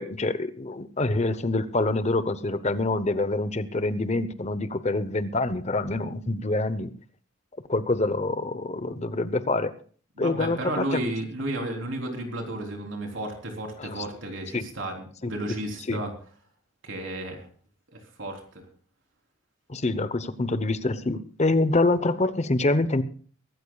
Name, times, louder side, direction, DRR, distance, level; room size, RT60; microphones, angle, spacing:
voice 1, 0.0-6.9 7.7-9.7 10.2-11.0 13.8-14.0 14.5-14.6 15.9-16.0 19.7-23.0, left 2 dB, 35° left, 12 dB, 0.9 m, -26 dB
voice 2, 10.2-16.1 16.8-17.5 17.9-18.7, right 1 dB, 70° right, 2 dB, 3.7 m, -33 dB
23.5 x 13.5 x 2.3 m, 0.43 s
head